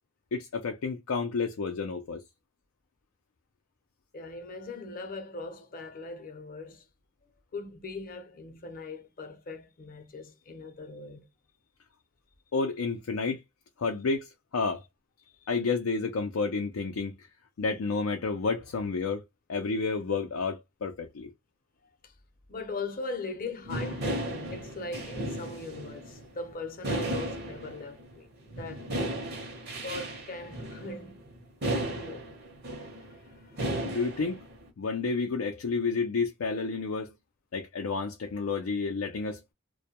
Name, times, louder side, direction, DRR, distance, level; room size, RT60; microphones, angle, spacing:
voice 1, 0.3-2.2 12.5-13.4 13.8-14.8 15.5-17.1 17.6-19.2 19.5-21.3 33.8-34.4 34.8-37.1 37.5-39.5, left 4 dB, 85° left, 0.4 m, -30 dB
voice 2, 4.1-6.9 7.5-11.3 15.2-15.5 22.0-22.1 22.5-28.3 28.6-28.9 29.8-31.3 31.6-32.3 32.9-33.9, left 3 dB, 45° left, 0.6 m, -40 dB
sound 1, 23.7-28.1 28.4-34.7, right 1 dB, 50° right, 0.7 m, -35 dB
2.2 x 2.1 x 2.8 m
head